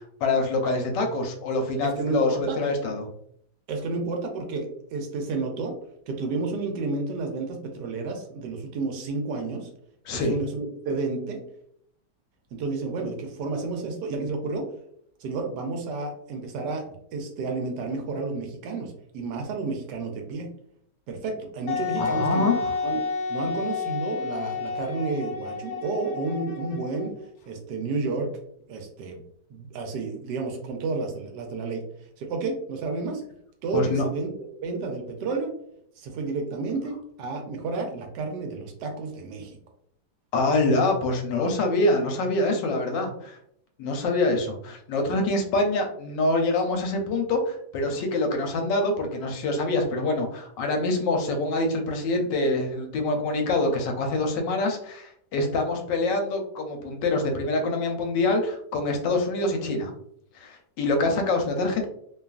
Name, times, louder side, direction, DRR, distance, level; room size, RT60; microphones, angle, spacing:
voice 1, 0.2-3.1 10.1-10.3 22.0-22.7 33.7-34.1 40.3-43.4 43.8-59.9 60.3-61.9, left 2 dB, 90° left, 4 dB, 1.3 m, -25 dB
voice 2, 1.8-2.6 3.7-5.8 6.1-9.7 10.1-11.4 12.5-14.7 15.2-20.5 21.1-22.5 22.8-23.0 23.3-27.1 27.5-28.3 28.7-29.2 29.5-31.8 32.2-33.2 33.6-34.3 34.6-35.5 36.0-39.6, right 3 dB, 75° right, 3 dB, 1.1 m, -31 dB
Wind instrument woodwind instrument, 21.7-27.3, left 4 dB, 65° left, 0.9 m, -30 dB
2.9 x 2.3 x 2.3 m, 0.69 s
omnidirectional pair, 1.9 m